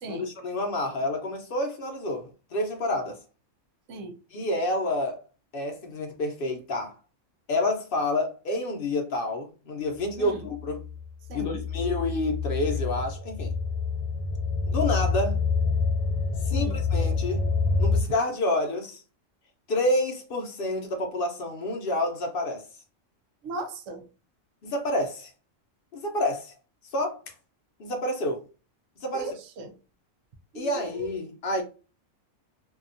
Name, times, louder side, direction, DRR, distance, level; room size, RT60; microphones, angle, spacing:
voice 1, 0.1-3.2 4.3-5.2 5.5-6.9 7.5-10.8 11.3-13.5 14.7-15.4 16.5-17.5 17.8-19.0 19.7-22.7 24.6-25.3 25.9-26.5 26.9-27.2 27.8-28.4 29.0-29.3 30.5-31.6, left 1 dB, 55° left, 0.7 m, -28 dB
sound 1, 10.4-18.0, left 4 dB, 90° left, 1.0 m, -27 dB
voice 2, 11.3-11.6 16.5-16.8 23.4-24.0 29.1-29.7 30.5-31.1, right 2 dB, 75° right, 0.9 m, -37 dB
2.7 x 2.3 x 2.5 m
omnidirectional pair, 1.3 m